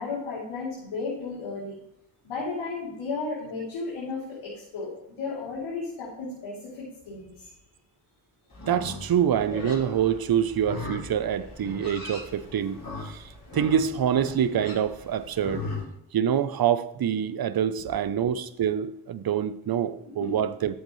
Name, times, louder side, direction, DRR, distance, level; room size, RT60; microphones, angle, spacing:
voice 1, 0.0-1.8 2.2-4.9 5.2-7.5 20.2-20.3, left 4 dB, 85° left, -7 dB, 3.4 m, -34 dB
Livestock farm animals working animals, 8.5-15.8, left 2 dB, 45° left, 4.3 m, -39 dB
voice 2, 8.7-15.6 16.1-20.7, right 9 dB, 45° right, 13 dB, 0.8 m, -26 dB
13.0 x 7.9 x 3.2 m, 0.79 s
supercardioid pair, 55°, 49 cm